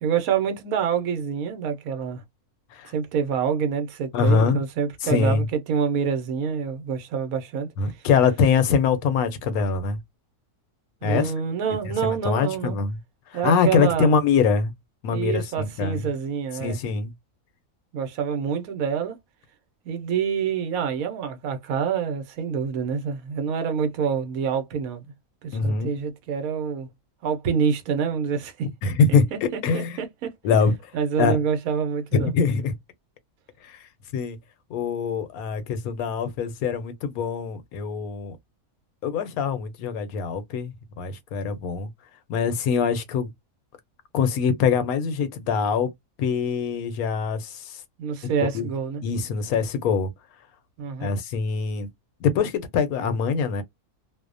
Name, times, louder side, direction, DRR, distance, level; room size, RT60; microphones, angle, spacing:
voice 1, 0.0-2.2 2.9-7.7 11.0-12.8 13.3-14.1 15.1-16.8 17.9-19.2 19.8-25.1 25.4-26.9 27.2-28.7 29.1-30.3 30.9-32.3 48.0-49.0 50.8-51.1, right 7 dB, 75° right, 1.1 m, -27 dB
voice 2, 4.1-4.6 5.0-5.4 7.8-10.0 11.0-11.3 12.0-13.0 13.3-14.7 15.0-16.0 16.6-17.1 25.5-25.9 28.8-30.0 30.4-30.9 31.2-31.4 32.1-32.7 33.6-33.8 34.1-34.4 34.7-38.3 39.0-41.9 42.3-43.3 44.1-45.9 46.2-47.8 48.5-48.7 49.0-50.1 51.0-51.9 52.2-53.6, left 5 dB, 80° left, 1.1 m, -23 dB
2.6 x 2.0 x 2.4 m
omnidirectional pair, 1.6 m